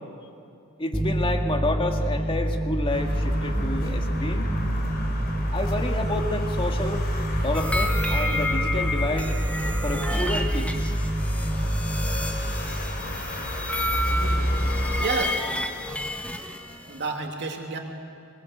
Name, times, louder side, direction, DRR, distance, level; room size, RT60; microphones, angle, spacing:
voice 1, 0.8-4.6 5.5-7.1 7.4-9.3 9.8-10.9, left 2 dB, 25° left, 4 dB, 2.0 m, -29 dB
sound 1, 0.9-14.1, right 1 dB, 10° right, 0.7 m, -27 dB
sound 2, 2.9-15.0, equal, 45° left, 3.6 m, -31 dB
sound 3, 7.5-17.1, left 1 dB, 5° left, 1.4 m, -31 dB
voice 2, 14.0-14.6 15.0-15.4 16.9-17.8, right 4 dB, 55° right, 2 dB, 2.8 m, -31 dB
24.5 x 22.0 x 8.1 m, 2.6 s
head